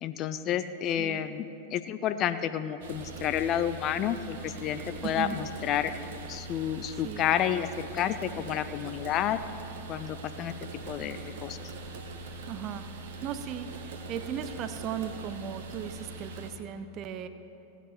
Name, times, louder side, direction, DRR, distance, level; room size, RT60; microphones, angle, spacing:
voice 1, 0.0-5.9 6.3-9.4 9.9-10.5 10.9-11.6, left 10 dB, 35° left, 11 dB, 0.4 m, -30 dB
voice 2, 1.0-1.3 5.0-5.4 6.9-7.2 12.5-12.9 13.2-17.3, right 9 dB, 35° right, 11 dB, 0.6 m, -37 dB
sound 1, 2.8-16.5, right 2 dB, 55° right, 1.2 m, -42 dB
16.0 x 9.1 x 4.5 m, 2.9 s
figure-of-eight pair, 90°, 0 cm